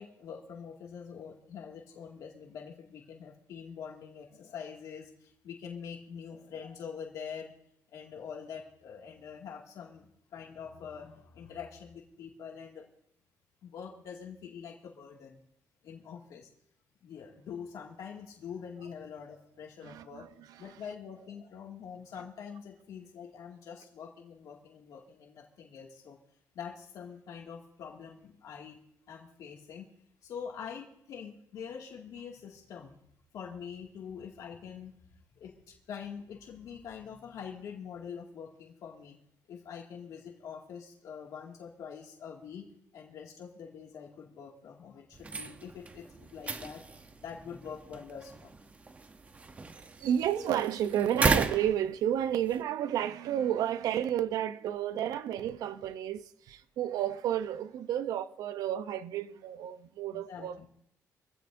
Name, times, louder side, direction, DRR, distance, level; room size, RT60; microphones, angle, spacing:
voice 1, 0.0-7.5 7.9-12.9 13.6-15.4 15.8-16.5 17.0-20.3 20.6-26.2 26.5-28.8 29.1-29.9 30.2-33.0 33.3-34.9 35.3-39.2 39.5-42.7 42.9-46.8 47.2-48.8 60.1-60.7, left 7 dB, 65° left, 2.2 m, -45 dB
voice 2, 19.8-20.3 49.8-60.7, right 10 dB, 75° right, 0.7 m, -31 dB
sound 1, 45.1-52.6, right 3 dB, 20° right, 0.8 m, -36 dB
24.5 x 16.0 x 2.6 m
cardioid pair, 145°, 6 cm